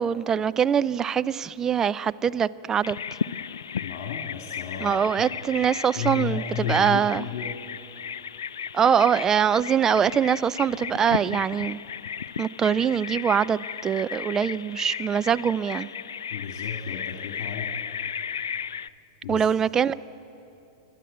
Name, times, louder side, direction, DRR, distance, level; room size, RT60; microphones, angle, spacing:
voice 1, 0.0-3.0 4.8-7.2 8.7-11.8 12.4-15.9 19.3-19.9, right 7 dB, 20° right, 0.5 m, -23 dB
Bird vocalization bird call bird song, 2.8-18.9, left 7 dB, 75° left, 0.4 m, -35 dB
voice 2, 3.8-5.3 6.0-7.6 16.3-17.8 19.2-19.5, left 7 dB, 55° left, 2.2 m, -33 dB
29.0 x 11.5 x 8.6 m
figure-of-eight pair, 95°, 2 cm